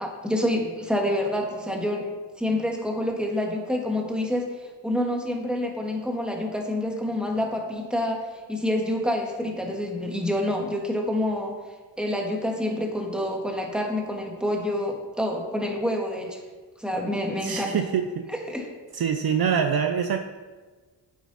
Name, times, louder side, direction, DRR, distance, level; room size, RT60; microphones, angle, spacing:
voice 1, 0.0-2.1 2.4-4.4 4.8-11.5 12.0-16.4 16.8-17.8 18.5-18.7, left 1 dB, ahead, 1 dB, 1.8 m, -27 dB
voice 2, 17.4-18.3 18.9-20.2, right 7 dB, 55° right, 6 dB, 0.7 m, -25 dB
9.5 x 7.8 x 4.2 m, 1.4 s
cardioid pair, 95°, 44 cm